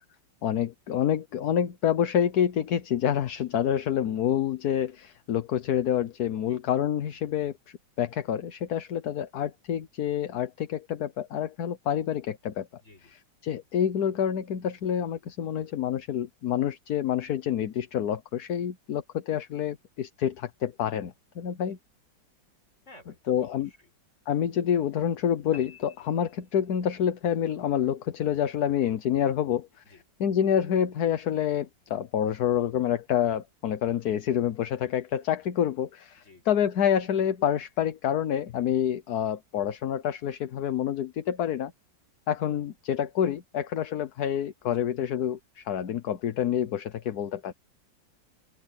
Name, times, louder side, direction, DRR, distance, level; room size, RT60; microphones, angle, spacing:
voice 1, 0.4-12.7 13.4-21.8 23.3-23.7 24.3-29.7 30.2-41.7 42.3-47.5, left 9 dB, 60° left, 1.3 m, -27 dB
voice 2, 12.8-13.2 21.7-21.8 22.8-23.9 29.8-30.0 36.2-36.5 44.7-44.9, left 2 dB, 35° left, 5.5 m, -54 dB
sound 1, 25.5-27.1, left 4 dB, 15° right, 2.2 m, -52 dB
open air
omnidirectional pair, 2.1 m